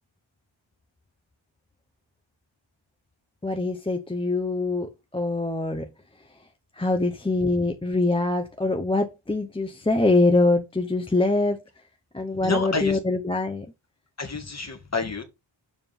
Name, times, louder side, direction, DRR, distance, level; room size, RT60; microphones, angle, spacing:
voice 1, 3.4-5.9 6.8-11.6 12.1-13.7, left 2 dB, 10° left, 0.7 m, -24 dB
voice 2, 12.4-13.0 14.2-15.2, left 4 dB, 30° left, 1.8 m, -29 dB
7.1 x 3.7 x 5.3 m
wide cardioid pair, 145°, 49 cm